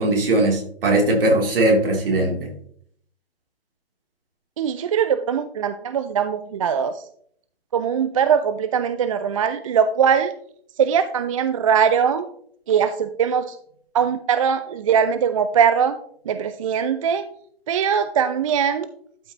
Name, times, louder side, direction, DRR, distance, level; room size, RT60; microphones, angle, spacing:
voice 1, 0.0-2.5, right 1 dB, 60° right, 1 dB, 3.0 m, -19 dB
voice 2, 4.6-7.0 7.7-10.3 10.8-12.3 12.7-13.6 13.9-16.0 16.3-17.2 17.7-18.9, right 7 dB, 35° right, 11 dB, 0.4 m, -21 dB
12.0 x 5.6 x 2.9 m, 0.64 s
figure-of-eight pair, 125°, 31 cm